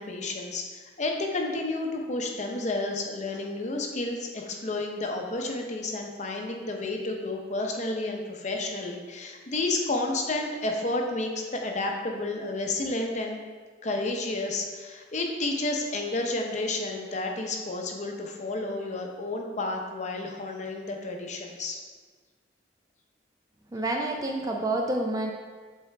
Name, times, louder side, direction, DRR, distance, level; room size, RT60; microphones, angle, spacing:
voice 1, 0.0-13.4 13.8-21.8, left 2 dB, 40° left, 2 dB, 0.7 m, -31 dB
voice 2, 23.7-25.3, right 2 dB, 20° right, 1 dB, 0.4 m, -28 dB
7.8 x 3.8 x 3.3 m, 1.5 s
head